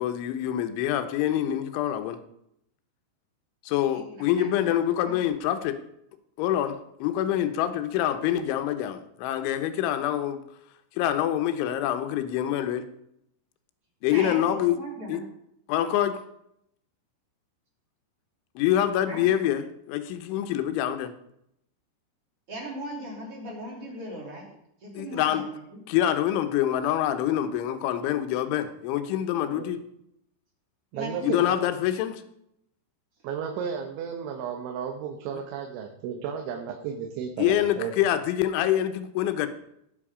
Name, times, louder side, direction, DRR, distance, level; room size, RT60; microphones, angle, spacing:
voice 1, 0.0-2.2 3.7-5.8 6.4-10.4 11.0-12.9 14.0-14.8 15.1-15.2 15.7-16.2 18.6-21.1 24.9-25.5 25.9-29.8 31.2-32.2 37.4-39.5, left 11 dB, 90° left, 9 dB, 3.3 m, -26 dB
voice 2, 3.9-4.7 5.0-5.2 14.0-15.2 19.0-19.3 22.5-24.5 24.8-25.8 30.9-31.2, right 1 dB, 35° right, -2 dB, 3.6 m, -38 dB
voice 3, 30.9-31.7 33.2-37.9, right 7 dB, 90° right, 3 dB, 3.6 m, -33 dB
18.5 x 8.0 x 5.0 m, 0.77 s
omnidirectional pair, 5.3 m